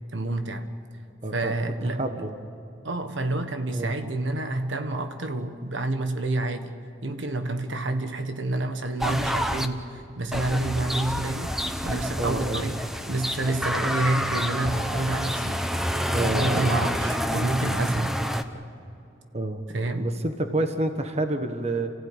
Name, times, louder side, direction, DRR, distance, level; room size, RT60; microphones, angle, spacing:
voice 1, 0.1-0.7 1.3-2.2 2.8-11.5 11.8-12.8 13.1-15.6 16.2-18.2 19.7-20.1, right 2 dB, 70° right, 7 dB, 1.5 m, -28 dB
voice 2, 1.2-1.5 2.0-2.3 3.7-3.9 12.2-12.7 16.1-16.7 19.3-21.9, right 2 dB, 35° right, 7 dB, 1.3 m, -28 dB
sound 1, 9.0-9.7 10.3-18.4, equal, ahead, 0.9 m, -28 dB
29.0 x 16.0 x 9.0 m, 2.8 s
head